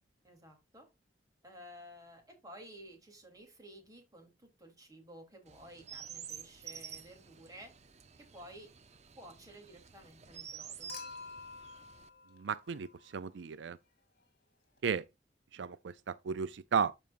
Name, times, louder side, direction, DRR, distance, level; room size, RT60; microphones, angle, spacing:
voice 1, 0.2-0.8 1.4-7.7 8.2-8.7 9.2-10.9, equal, 20° right, 3.1 m, -53 dB
Chirp tweet, 5.5-12.1, right 8 dB, 40° right, 0.7 m, -50 dB
Human group actions / Chink clink / Liquid, 10.9-13.3 14.8-14.9, left 4 dB, 55° left, 3.1 m, -49 dB
voice 2, 12.4-12.9 13.1-13.8 14.8-15.0 15.5-16.9, right 6 dB, 75° right, 0.4 m, -34 dB
12.5 x 5.3 x 2.5 m
head